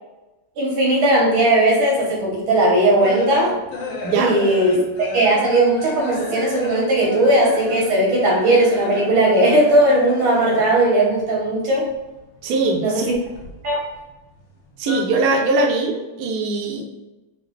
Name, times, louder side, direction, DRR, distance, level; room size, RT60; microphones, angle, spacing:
voice 1, 0.6-3.6 4.1-11.9 12.8-13.2 13.6-13.8, right 1 dB, 85° right, -4 dB, 2.1 m, -17 dB
sound 1, 2.2-10.9 11.2-12.4 12.7-14.1 14.4-15.0, left 2 dB, 70° left, 1.4 m, -31 dB
voice 2, 4.0-4.3 12.4-13.1 14.8-16.8, right 3 dB, 70° right, 0 dB, 0.9 m, -21 dB
4.7 x 2.1 x 3.1 m, 1.0 s
omnidirectional pair, 2.2 m